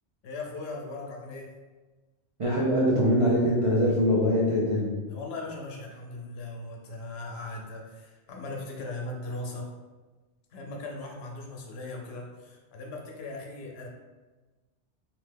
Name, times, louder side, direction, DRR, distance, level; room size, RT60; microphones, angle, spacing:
voice 1, 0.2-1.5 5.1-9.7 10.5-13.9, left 2 dB, 70° left, 0 dB, 0.8 m, -38 dB
voice 2, 2.4-5.0, equal, 55° right, -6 dB, 0.3 m, -23 dB
2.8 x 2.1 x 3.3 m, 1.2 s
omnidirectional pair, 1.2 m